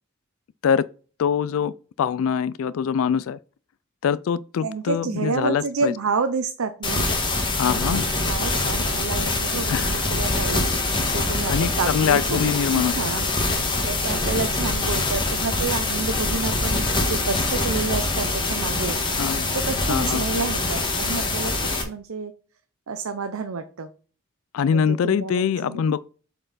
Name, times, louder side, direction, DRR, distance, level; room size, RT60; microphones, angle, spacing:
voice 1, 1.2-1.7 2.0-3.4 4.0-5.9 7.5-8.0 9.7-10.4 11.5-12.9 19.2-19.4 19.9-20.2 24.5-26.0, left 7 dB, 75° left, 0.3 m, -23 dB
voice 2, 4.6-7.1 7.7-10.7 11.1-19.0 19.5-21.5 21.8-22.3 22.9-23.9 24.7-26.0, right 4 dB, 80° right, 0.7 m, -29 dB
sound 1, 6.8-21.8, left 2 dB, 20° left, 1.4 m, -24 dB
7.6 x 4.5 x 4.0 m
head